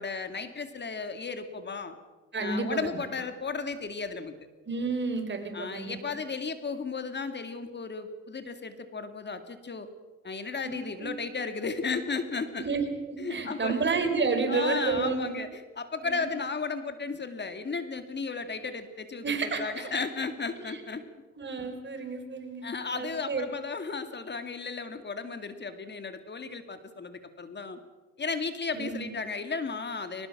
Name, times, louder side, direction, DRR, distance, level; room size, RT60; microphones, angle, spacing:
voice 1, 0.0-2.0 2.4-4.4 5.5-9.9 10.2-12.7 13.2-13.8 14.5-21.0 22.6-27.8 28.2-30.3, left 4 dB, 35° left, 9 dB, 2.3 m, -34 dB
voice 2, 2.3-3.0 4.7-6.1 10.6-11.1 12.6-15.3 16.0-16.3 19.2-19.7 20.6-20.8 21.4-23.4 28.7-29.1, right 4 dB, 35° right, 5 dB, 4.8 m, -31 dB
21.5 x 20.0 x 7.3 m, 1.2 s
cardioid pair, 90°, 30 cm